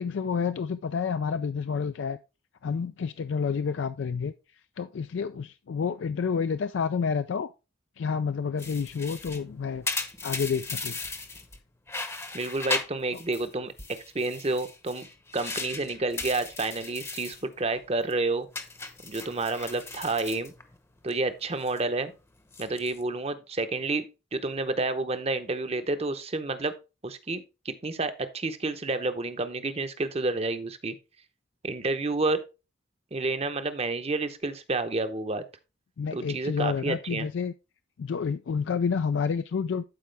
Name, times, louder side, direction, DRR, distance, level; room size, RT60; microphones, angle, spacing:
voice 1, 0.0-2.2 2.6-4.3 4.8-7.5 8.0-9.9 10.2-11.0 36.0-37.5 38.0-39.8, left 6 dB, 65° left, 0.4 m, -29 dB
sound 1, 8.6-11.6 11.9-13.5 13.8-17.4 17.8-18.1 18.5-21.1 21.4-21.8 22.4-23.0, left 3 dB, 15° left, 0.8 m, -37 dB
voice 2, 12.3-15.1 15.3-18.5 19.0-20.5 21.0-22.1 22.6-26.7 27.0-31.0 31.6-32.4 33.1-35.4 36.1-37.3, right 3 dB, 30° right, 0.8 m, -30 dB
11.5 x 4.8 x 3.3 m
head